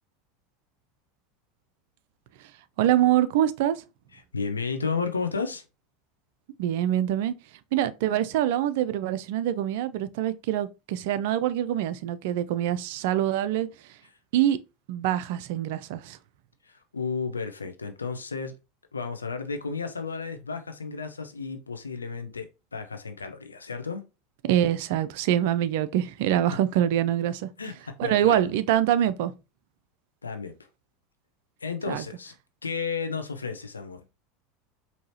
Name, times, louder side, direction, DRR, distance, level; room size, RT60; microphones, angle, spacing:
voice 1, 2.8-3.8 6.6-7.3 7.7-13.7 14.3-14.6 14.9-16.2 24.5-27.5 28.0-29.3 31.9-32.0, right 11 dB, 60° right, 0.4 m, -25 dB
voice 2, 4.1-5.6 16.6-18.5 18.9-24.0 27.6-28.5 30.2-30.5 31.6-32.3 32.6-34.0, left 5 dB, 85° left, 0.6 m, -33 dB
4.6 x 2.8 x 2.8 m
figure-of-eight pair, 80°, 0 cm